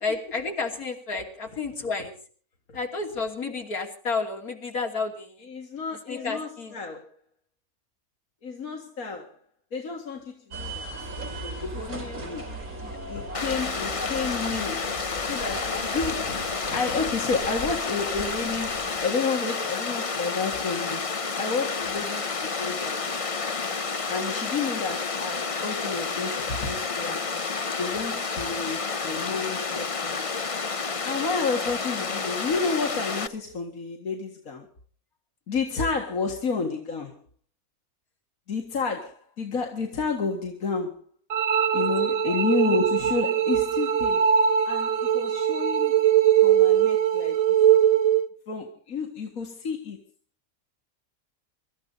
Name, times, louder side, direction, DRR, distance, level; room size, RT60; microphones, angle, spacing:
voice 1, 0.0-2.1 2.7-5.5 6.1-6.8 11.7-12.2 12.7-13.1 31.7-31.9 35.8-35.9 42.0-42.4, left 4 dB, 90° left, 2 dB, 3.4 m, -32 dB
voice 2, 5.5-7.1 8.4-9.3 9.7-10.9 11.4-12.4 13.1-14.9 15.2-23.0 24.1-27.2 27.8-30.3 31.0-34.7 35.5-37.1 38.5-41.0 41.7-44.3 44.7-46.0 46.4-47.4 48.5-50.0, left 4 dB, 75° left, 2 dB, 2.3 m, -31 dB
sound 1, 10.5-19.1, right 1 dB, 85° right, 4.5 m, -38 dB
Water, 13.3-33.3, left 4 dB, 30° left, 0.7 m, -30 dB
sound 2, 41.3-48.3, right 9 dB, 70° right, 1.4 m, -21 dB
25.0 x 13.5 x 4.1 m, 0.44 s
omnidirectional pair, 1.5 m